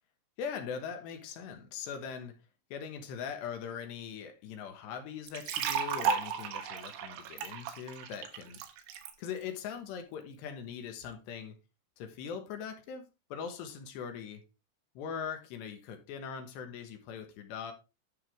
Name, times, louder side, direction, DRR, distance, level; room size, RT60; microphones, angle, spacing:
voice 1, 0.4-2.4 2.7-8.6 9.2-11.6 12.0-14.4 15.0-17.7, left 7 dB, 75° left, 3.3 m, -41 dB
sound 1, 5.3-9.1, right 7 dB, 80° right, 3.3 m, -34 dB
11.0 x 5.5 x 3.3 m
omnidirectional pair, 5.2 m